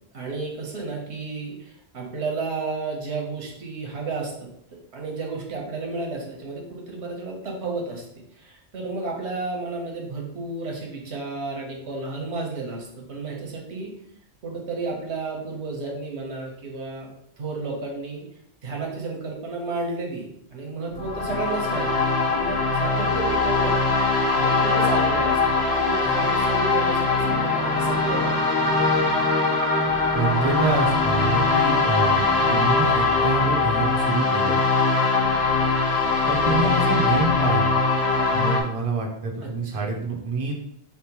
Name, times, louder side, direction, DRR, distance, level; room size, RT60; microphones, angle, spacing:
voice 1, 0.1-4.3 4.9-8.0 8.4-13.9 14.4-17.1 17.4-18.2 18.6-21.9 22.2-23.8 24.4-28.6 36.6-37.0 39.4-39.9, right 3 dB, 80° right, -1 dB, 1.3 m, -32 dB
sound 1, 20.9-38.6, left 3 dB, 65° left, 1.2 m, -21 dB
voice 2, 30.1-34.6 36.3-37.7 38.3-40.5, right 3 dB, 35° right, -1 dB, 0.7 m, -26 dB
4.3 x 3.5 x 3.0 m, 0.72 s
omnidirectional pair, 1.1 m